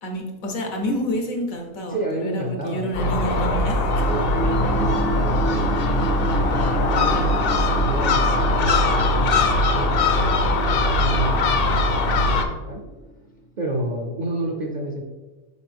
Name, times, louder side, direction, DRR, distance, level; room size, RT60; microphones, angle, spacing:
voice 1, 0.0-4.0, equal, 85° left, 2 dB, 1.5 m, -29 dB
voice 2, 1.9-3.3 4.1-6.2 6.5-12.8 13.6-15.0, right 1 dB, 45° right, -1 dB, 0.6 m, -30 dB
Gull seagull, 2.9-12.4, left 2 dB, 55° left, 0.7 m, -21 dB
sound 1, 3.4-13.4, right 1 dB, 70° left, 1.3 m, -32 dB
6.5 x 4.6 x 3.4 m, 1.2 s
omnidirectional pair, 1.4 m